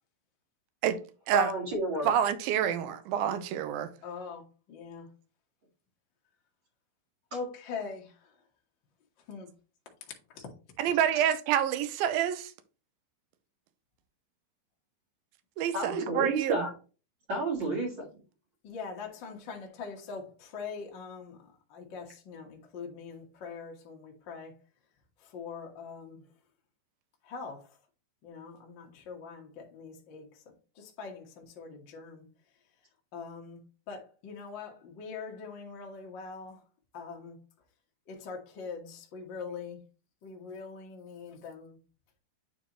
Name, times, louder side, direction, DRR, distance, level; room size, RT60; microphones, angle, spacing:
voice 1, 1.3-2.1 15.7-16.7 17.3-18.1, right 2 dB, 40° right, 2.1 m, -30 dB
voice 2, 2.0-3.9 10.8-12.5 15.6-16.7, right 10 dB, 85° right, 2.3 m, -28 dB
voice 3, 4.0-5.1 7.3-8.2 9.3-9.5 10.3-10.4 18.6-24.5 25.2-26.2 27.2-27.7 28.2-30.3 30.7-32.2 33.1-33.6 33.9-36.6 36.9-37.4 38.1-39.8 40.2-41.8, left 5 dB, 70° left, 1.0 m, -42 dB
9.1 x 4.2 x 3.0 m
omnidirectional pair, 4.2 m